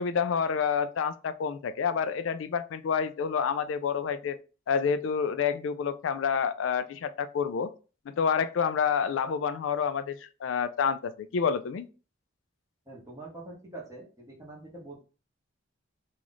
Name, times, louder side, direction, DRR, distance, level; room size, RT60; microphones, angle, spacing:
voice 1, 0.0-4.4 4.7-7.7 8.1-11.9, left 6 dB, 85° left, 0.3 m, -28 dB
voice 2, 12.9-15.0, right 2 dB, 15° right, 1.1 m, -44 dB
3.0 x 2.4 x 3.8 m
head